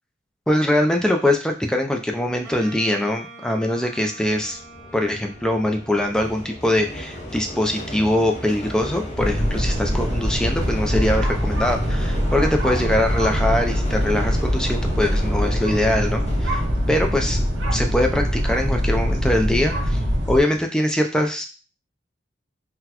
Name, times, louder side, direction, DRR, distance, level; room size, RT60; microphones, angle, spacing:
voice 1, 0.5-4.6 4.9-17.4 17.7-20.0 20.3-21.4, left 1 dB, 5° left, 3 dB, 0.4 m, -22 dB
Wind instrument woodwind instrument, 2.4-7.4, right 1 dB, 15° right, 1.2 m, -45 dB
sound 1, 4.1-20.6, equal, 35° left, 0.7 m, -35 dB
sound 2, 9.2-20.4, equal, 85° right, 0.9 m, -23 dB
3.9 x 2.2 x 2.8 m, 0.34 s
head